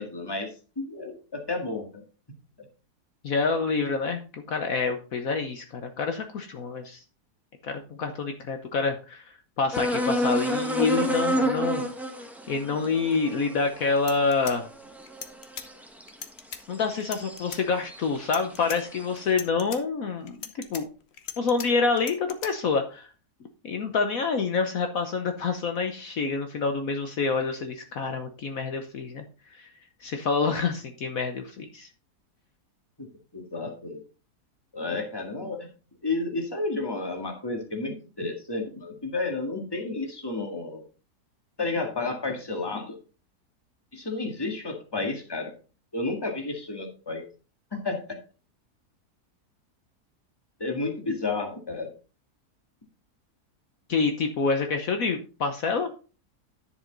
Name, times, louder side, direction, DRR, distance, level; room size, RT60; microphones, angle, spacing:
voice 1, 0.0-2.0 33.0-33.1 33.3-34.0 34.7-35.7 36.0-40.8 41.6-43.0 43.9-45.5 45.9-47.3 47.7-48.0 50.6-51.9, left 3 dB, 15° left, 3 dB, 1.8 m, -31 dB
voice 2, 3.2-7.0 7.6-11.8 12.5-14.7 16.7-20.9 21.4-23.1 23.6-29.2 29.5-29.7 30.0-31.9 53.9-55.9, left 4 dB, 65° left, 6 dB, 1.3 m, -27 dB
sound 1, 9.7-16.1 16.7-17.5 17.9-19.0, equal, ahead, 1.2 m, -29 dB
sound 2, 13.7-13.8 14.0-15.7 16.1-16.6 17.0-17.6 18.2-18.8 19.2-19.8 20.3-21.7 22.0-22.5, left 7 dB, 45° left, 1.1 m, -39 dB
10.5 x 7.0 x 3.9 m, 0.35 s
omnidirectional pair, 1.7 m